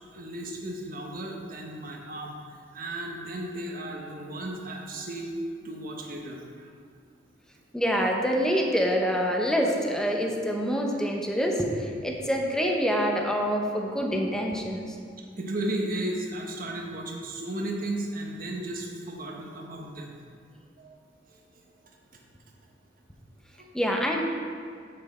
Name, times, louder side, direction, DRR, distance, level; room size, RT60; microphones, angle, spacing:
voice 1, 0.1-6.7 15.4-20.1 20.8-21.0 23.6-23.7, right 1 dB, 50° right, 0 dB, 1.1 m, -35 dB
voice 2, 7.7-15.0 23.7-24.2, equal, 5° left, 1 dB, 0.8 m, -26 dB
8.0 x 6.5 x 4.4 m, 2.1 s
head